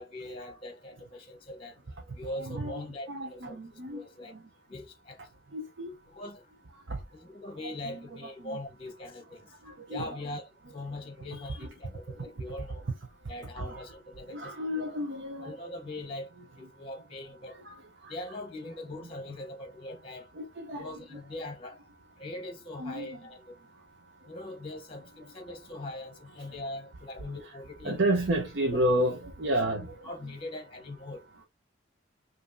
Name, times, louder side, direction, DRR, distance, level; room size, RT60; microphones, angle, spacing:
voice 1, 0.0-1.8 2.1-4.3 4.7-5.2 6.1-6.5 7.1-12.8 13.3-14.9 15.4-17.6 18.1-20.3 20.7-21.8 22.2-23.8 24.3-28.1 28.7-28.8 29.4-31.4, left 1 dB, 30° left, 0.8 m, -42 dB
voice 2, 2.4-4.4 5.5-6.0 6.9-7.0 7.8-8.1 8.4-8.6 9.9-10.1 11.6-11.7 13.6-13.8 14.3-15.5 17.6-17.7 18.0-18.1 20.3-20.9 22.8-23.2 27.8-29.9, right 1 dB, 65° right, 0.7 m, -31 dB
5.1 x 2.7 x 2.6 m
head